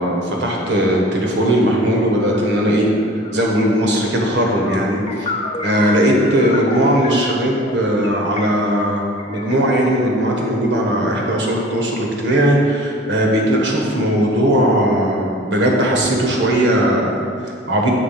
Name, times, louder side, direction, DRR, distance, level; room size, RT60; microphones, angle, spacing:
voice 1, 0.0-2.9 3.3-5.3 5.6-17.9, equal, 70° right, -1 dB, 1.3 m, -18 dB
sound 1, 2.3-2.5 2.8-9.6, left 2 dB, 35° left, 0.6 m, -31 dB
7.4 x 4.0 x 5.7 m, 2.4 s
head